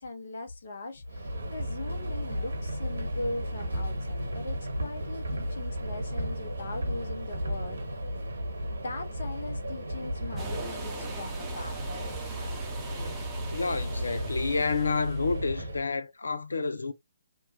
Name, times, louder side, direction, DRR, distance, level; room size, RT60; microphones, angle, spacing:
voice 1, 0.0-8.0 8.7-11.8, left 2 dB, 55° left, 1.0 m, -40 dB
Subway metro underground, 1.1-15.9, equal, 70° right, 1.3 m, -34 dB
sound 1, 10.3-15.4, right 5 dB, 15° right, 0.8 m, -42 dB
voice 2, 13.5-16.9, left 4 dB, 75° left, 0.4 m, -29 dB
2.9 x 2.3 x 2.8 m
figure-of-eight pair, 140°, 0 cm